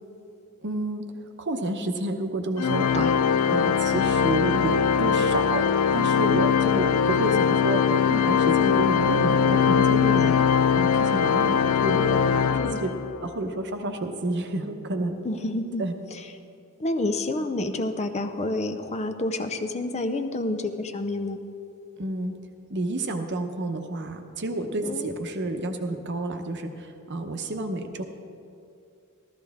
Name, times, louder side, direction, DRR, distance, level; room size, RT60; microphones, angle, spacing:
voice 1, 0.6-1.1 1.4-3.2 3.5-10.4 10.7-12.9 13.2-15.2 15.8-16.0 22.0-22.4 22.7-28.0, right 1 dB, 50° right, 6 dB, 0.8 m, -30 dB
Organ, 2.6-13.2, left 7 dB, 85° left, 0.4 m, -21 dB
voice 2, 10.2-10.6 12.5-12.8 15.2-15.8 16.1-16.2 16.8-21.4 24.8-25.1, left 2 dB, 30° left, 8 dB, 0.5 m, -29 dB
13.5 x 13.5 x 3.5 m, 2.5 s
head